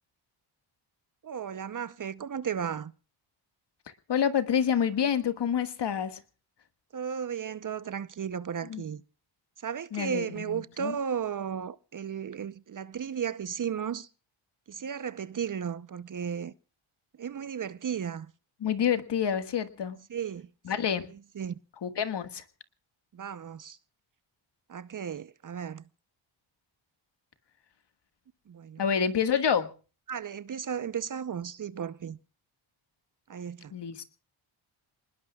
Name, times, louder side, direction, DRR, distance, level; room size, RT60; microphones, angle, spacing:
voice 1, 1.2-2.9 6.9-9.0 9.6-14.1 14.7-16.5 17.2-18.3 20.1-20.5 21.4-21.5 23.1-23.8 24.7-25.8 28.5-28.9 30.1-32.2 33.3-33.7, right 8 dB, 40° right, 0.7 m, -34 dB
voice 2, 4.1-6.2 8.6-8.8 9.9-10.9 18.6-20.0 20.6-21.1 21.8-22.4 28.8-29.7 33.7-34.0, left 8 dB, 55° left, 1.7 m, -28 dB
28.0 x 20.0 x 2.3 m
cardioid pair, 95°, 49 cm